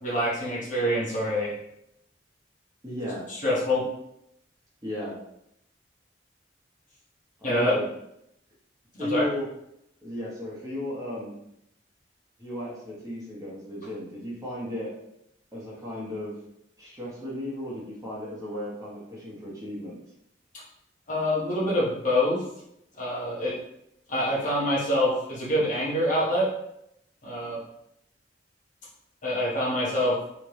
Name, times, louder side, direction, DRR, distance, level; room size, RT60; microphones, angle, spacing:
voice 1, 0.0-1.6 3.4-3.9 7.4-7.7 8.9-9.3 21.1-22.4 23.0-23.5 24.1-26.5 27.2-27.6 29.2-30.2, left 1 dB, 45° left, -6 dB, 1.4 m, -25 dB
voice 2, 2.8-3.2 4.8-5.2 7.4-7.8 9.0-9.5 10.0-11.3 12.4-14.9 15.5-16.3 16.8-20.0, left 1 dB, 20° right, -7 dB, 1.1 m, -34 dB
3.4 x 3.3 x 3.1 m, 0.78 s
head